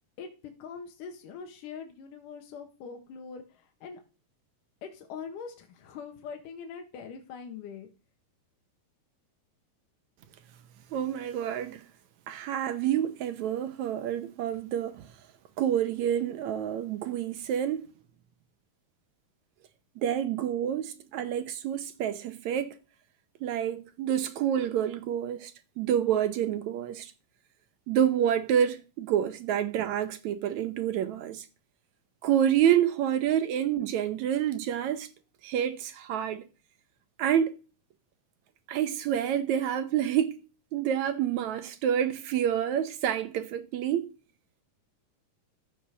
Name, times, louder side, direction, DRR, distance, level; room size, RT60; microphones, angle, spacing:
voice 1, 0.6-4.0 4.8-7.9, left 6 dB, 75° left, 2.8 m, -42 dB
voice 2, 10.9-11.8 12.3-15.0 15.6-17.9 20.0-22.8 23.4-25.5 25.8-27.1 27.9-31.5 32.2-35.1 35.4-36.4 37.2-37.5 38.7-40.4 40.7-44.1, right 10 dB, 70° right, 2.0 m, -28 dB
14.5 x 5.8 x 6.4 m
omnidirectional pair, 3.9 m